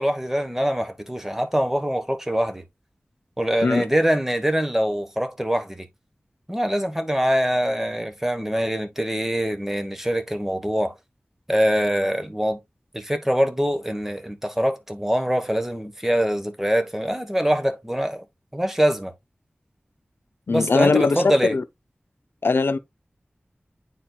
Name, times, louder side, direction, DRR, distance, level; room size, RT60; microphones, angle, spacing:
voice 1, 0.0-2.6 3.4-5.9 6.5-10.9 11.5-12.6 12.9-18.2 18.5-19.1 20.5-21.6, equal, 10° right, 1.2 m, -24 dB
voice 2, 20.5-21.6 22.4-22.8, left 4 dB, 85° left, 0.5 m, -20 dB
9.3 x 4.4 x 2.3 m
wide cardioid pair, 60°, 4 cm